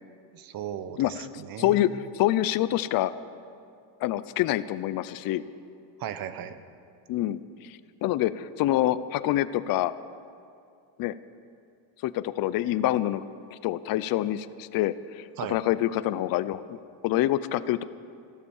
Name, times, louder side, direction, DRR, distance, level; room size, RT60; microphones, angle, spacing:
voice 1, 0.3-1.8 6.0-6.6 15.4-15.6, right 9 dB, 45° right, 12 dB, 0.9 m, -36 dB
voice 2, 1.6-3.1 4.0-5.4 7.1-9.9 11.0-11.1 12.0-13.2 13.5-16.8 17.0-17.8, left 13 dB, 45° left, 14 dB, 0.5 m, -26 dB
14.5 x 13.0 x 7.2 m, 2.4 s
cardioid pair, 135°, 49 cm